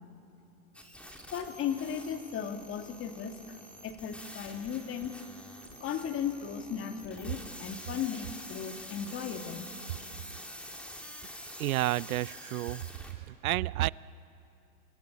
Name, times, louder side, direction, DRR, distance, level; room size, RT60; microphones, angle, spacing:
sound 1, 0.7-13.1, equal, 5° left, 3.1 m, -47 dB
voice 1, 1.3-3.6 3.8-5.2 5.8-9.7, left 8 dB, 30° left, 5 dB, 2.4 m, -36 dB
voice 2, 11.6-12.8 13.3-13.9, right 16 dB, 80° right, 21 dB, 0.6 m, -30 dB
29.5 x 23.0 x 8.8 m, 2.7 s
hypercardioid pair, 125°, 42 cm